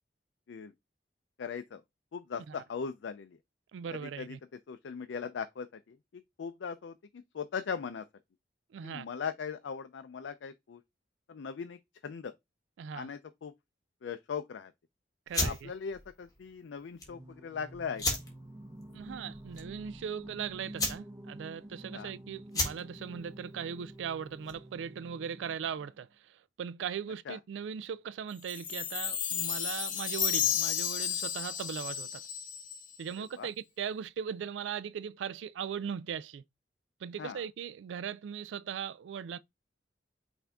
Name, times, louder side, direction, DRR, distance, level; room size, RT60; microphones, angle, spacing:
voice 1, 1.4-1.8 2.1-3.4 3.9-8.1 8.8-10.8 11.3-12.3 12.9-13.5 14.0-14.7 15.3-18.2 21.9-22.1 27.3-27.4 33.2-33.5 37.2-37.5, left 6 dB, 85° left, 0.4 m, -40 dB
voice 2, 3.7-4.4 8.7-9.1 12.8-13.1 15.3-15.7 18.9-26.1 26.6-32.2 33.0-36.4 37.0-39.4, right 7 dB, 90° right, 0.3 m, -39 dB
sound 1, 15.3-24.8, left 2 dB, 20° left, 1.5 m, -37 dB
Singing, 17.0-26.0, right 1 dB, 15° right, 0.8 m, -49 dB
Chime, 28.5-32.9, left 9 dB, 45° left, 0.8 m, -33 dB
5.7 x 2.6 x 3.5 m
head